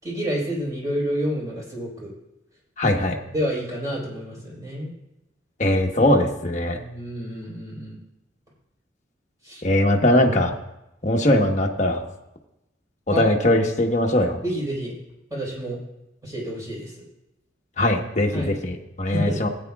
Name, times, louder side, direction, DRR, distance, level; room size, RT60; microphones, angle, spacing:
voice 1, 0.0-2.1 3.3-4.9 6.7-8.0 9.4-9.6 11.3-11.4 13.1-13.2 14.4-14.9 15.3-15.8 16.2-16.9 18.3-18.5 19.1-19.4, equal, 20° right, -4 dB, 4.2 m, -29 dB
voice 2, 2.8-3.2 5.6-6.8 9.6-10.5 11.0-12.0 13.1-14.4 17.8-19.5, left 1 dB, 40° left, 1 dB, 1.2 m, -20 dB
18.5 x 9.0 x 2.4 m, 0.90 s
head